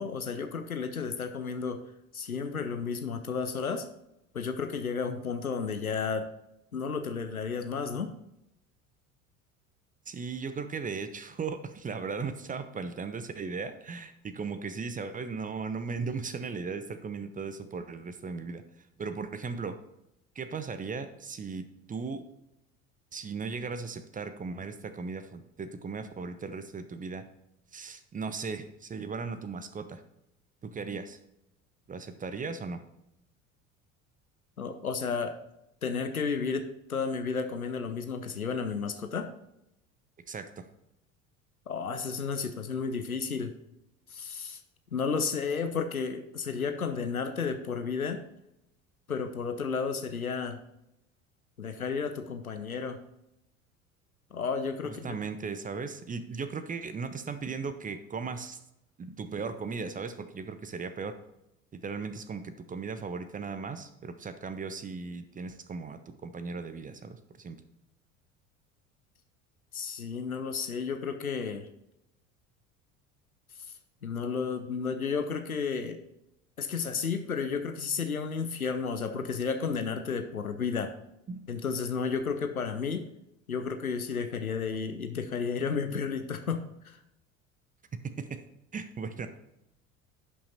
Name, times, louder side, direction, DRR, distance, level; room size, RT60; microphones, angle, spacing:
voice 1, 0.0-1.8 2.1-3.9 4.3-6.3 6.7-8.1 34.6-35.4 35.8-39.3 41.7-43.5 44.1-44.6 44.9-48.2 49.1-50.6 51.6-53.0 54.3-55.2 69.7-71.7 74.0-76.0 76.6-80.9 81.5-83.1 83.5-87.0, left 5 dB, 85° left, 8 dB, 0.7 m, -32 dB
voice 2, 10.1-19.8 20.3-22.2 23.1-27.2 27.7-30.0 30.6-31.2 31.9-32.8 40.3-40.7 54.8-58.6 59.0-61.1 61.7-67.6 81.3-81.5 88.2-88.4 88.7-89.4, right 5 dB, 20° right, 10 dB, 0.8 m, -37 dB
11.0 x 5.9 x 4.2 m, 0.84 s
figure-of-eight pair, 65°, 42 cm